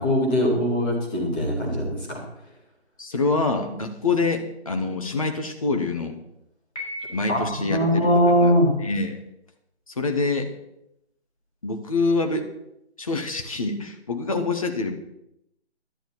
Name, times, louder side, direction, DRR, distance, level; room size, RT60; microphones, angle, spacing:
voice 1, 0.0-2.2 7.3-7.4 7.7-8.7, equal, 10° left, -5 dB, 1.2 m, -21 dB
voice 2, 3.0-6.2 7.1-8.1 8.4-8.5 8.8-9.2 9.9-10.5 11.6-12.5 13.0-14.9, left 3 dB, 30° left, 5 dB, 1.1 m, -25 dB
Piano, 6.8-7.9, left 1 dB, 80° left, 5.3 m, -37 dB
11.5 x 10.5 x 4.3 m, 0.82 s
figure-of-eight pair, 160°, 33 cm